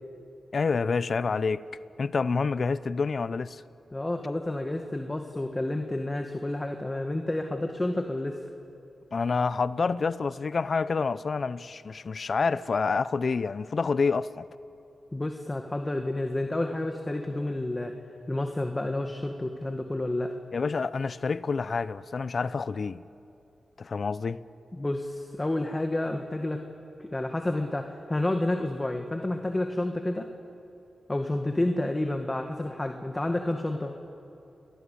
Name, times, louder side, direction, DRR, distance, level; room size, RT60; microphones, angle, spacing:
voice 1, 0.5-1.6 2.0-3.6 9.1-14.5 20.5-23.0 23.8-24.4, left 4 dB, 60° left, 0.7 m, -28 dB
voice 2, 3.9-8.4 15.1-17.9 18.3-20.4 24.7-26.6 27.0-30.3 31.1-34.0, left 1 dB, 25° left, 1.9 m, -30 dB
29.5 x 21.5 x 8.6 m
cardioid pair, 50°, 0 cm